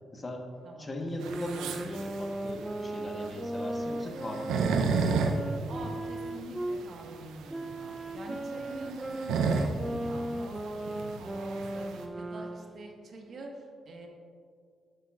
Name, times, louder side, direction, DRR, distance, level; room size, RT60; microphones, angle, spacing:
voice 1, 0.1-0.5 0.8-5.3, left 1 dB, 30° left, 3 dB, 1.2 m, -39 dB
voice 2, 0.6-0.9 5.7-14.1, right 2 dB, 55° right, 1 dB, 1.4 m, -45 dB
sound 1, 1.1-6.8 7.5-12.9, right 1 dB, 15° right, 0.4 m, -37 dB
sound 2, 1.2-12.1, right 4 dB, 80° right, 0.6 m, -32 dB
11.5 x 7.9 x 2.4 m, 2.2 s
supercardioid pair, 55°, 0 cm